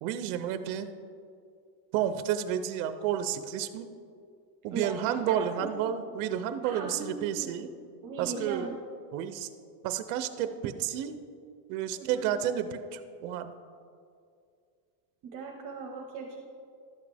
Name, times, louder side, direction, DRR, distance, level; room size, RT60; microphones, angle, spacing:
voice 1, 0.0-0.9 1.9-3.9 4.6-7.7 8.2-8.8 9.1-9.5 9.8-11.2 11.7-13.5, right 10 dB, 65° right, 10 dB, 0.7 m, -31 dB
voice 2, 4.7-5.7 6.6-7.5 8.0-8.7 12.0-12.2 15.3-16.4, right 4 dB, 40° right, 0 dB, 1.1 m, -38 dB
12.0 x 7.3 x 3.4 m, 2.3 s
cardioid pair, 145°, 48 cm